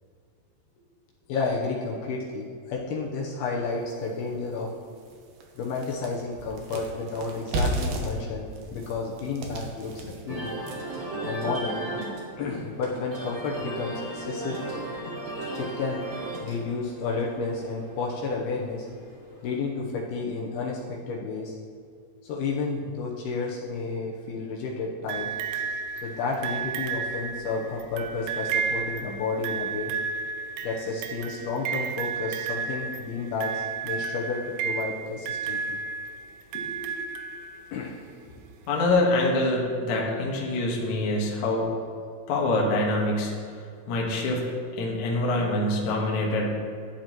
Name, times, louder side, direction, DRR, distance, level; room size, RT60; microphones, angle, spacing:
voice 1, 1.3-4.7 5.6-10.6 11.2-11.8 12.4-14.6 15.5-16.0 16.4-18.9 19.4-21.6 22.2-25.3 26.0-29.9 30.6-35.8 37.7-38.0, left 4 dB, 75° left, -3 dB, 2.7 m, -31 dB
sound 1, 3.9-4.0 4.5-4.6 5.0-11.0, right 2 dB, 70° right, 2.3 m, -33 dB
sound 2, 10.3-19.7, right 2 dB, 40° right, 3.2 m, -36 dB
sound 3, 25.1-37.9 38.9-39.0, right 6 dB, 85° right, 2.8 m, -32 dB
voice 2, 36.5-36.9 38.7-41.7 42.3-43.3 43.9-44.4 44.8-46.5, left 2 dB, 60° left, -2 dB, 2.2 m, -25 dB
11.5 x 10.5 x 3.0 m, 2.2 s
omnidirectional pair, 4.9 m